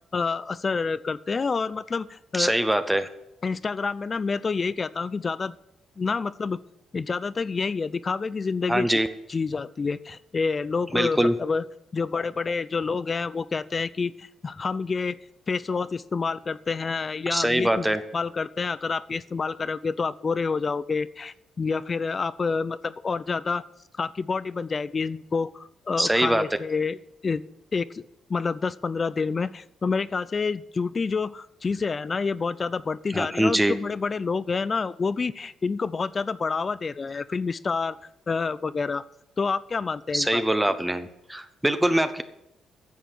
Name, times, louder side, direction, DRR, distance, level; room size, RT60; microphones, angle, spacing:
voice 1, 0.1-2.5 3.4-5.5 6.0-6.6 6.9-8.9 9.3-11.6 11.9-15.2 15.5-23.6 24.0-27.0 27.2-27.4 27.7-28.0 28.3-38.0 38.3-39.0 39.4-40.4, left 4 dB, 35° left, 17 dB, 0.5 m, -28 dB
voice 2, 2.3-3.1 8.7-9.1 10.9-11.3 17.3-18.0 26.0-26.4 33.1-33.8 40.1-42.2, right 1 dB, 5° right, 10 dB, 0.9 m, -23 dB
10.5 x 7.3 x 8.1 m, 0.85 s
cardioid pair, 90°, 0 cm